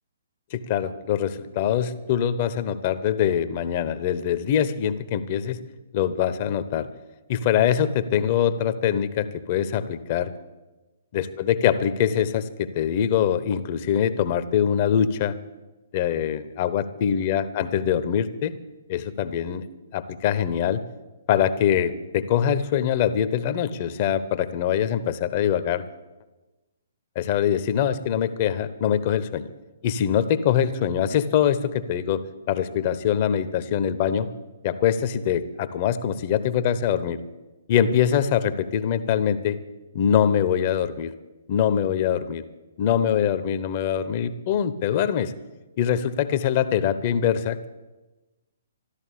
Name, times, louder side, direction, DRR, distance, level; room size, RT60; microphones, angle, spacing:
voice 1, 0.5-5.6 5.9-6.9 7.3-10.3 11.1-15.4 15.9-18.5 18.9-19.6 19.9-20.8 21.3-25.8 27.1-29.5 29.8-32.2 32.5-34.3 34.6-37.2 37.7-39.6 39.9-41.1 41.5-42.4 42.8-45.3 45.8-47.7, left 9 dB, 35° left, 13 dB, 1.0 m, -23 dB
13.5 x 12.5 x 8.5 m, 1.1 s
figure-of-eight pair, 125°, 0 cm